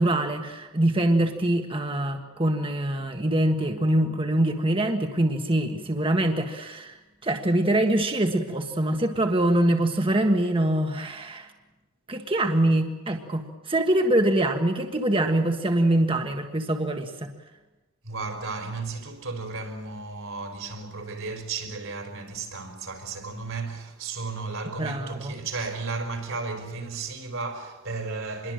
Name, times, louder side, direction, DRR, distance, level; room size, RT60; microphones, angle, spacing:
voice 1, 0.0-6.9 7.2-11.5 12.1-17.3 24.8-25.3, right 1 dB, 25° right, 1.6 m, -24 dB
voice 2, 18.0-28.5, right 4 dB, 70° right, 4.6 m, -34 dB
26.5 x 22.0 x 7.7 m
head